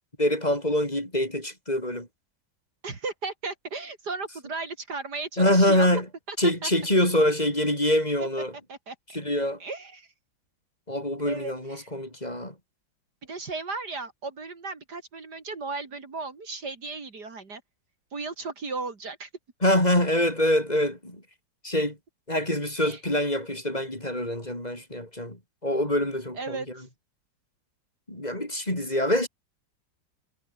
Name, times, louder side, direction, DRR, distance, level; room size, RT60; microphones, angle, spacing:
voice 1, 0.2-2.1 5.4-6.1 6.4-8.5 9.1-9.6 10.9-12.5 19.6-21.2 21.6-22.0 22.3-26.6 28.1-29.3, left 1 dB, 20° left, 5.4 m, -25 dB
voice 2, 2.8-5.9 6.3-6.4 6.6-6.7 8.7-9.0 9.6-10.1 11.3-11.9 13.2-17.6 18.1-19.3 22.8-23.0 26.4-26.9, right 3 dB, 60° right, 3.4 m, -35 dB
omnidirectional pair, 2.0 m